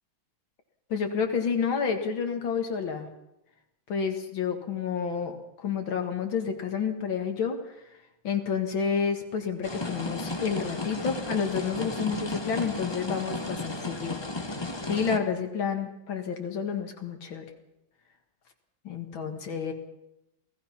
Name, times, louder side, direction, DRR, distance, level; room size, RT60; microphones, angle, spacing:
voice 1, 0.9-3.1 3.9-7.7 8.2-14.2 14.8-17.5 18.8-19.7, left 6 dB, 75° left, 4 dB, 2.6 m, -30 dB
sound 1, 9.6-15.2, left 2 dB, 15° left, 1.2 m, -34 dB
28.0 x 17.5 x 5.9 m, 0.88 s
omnidirectional pair, 2.2 m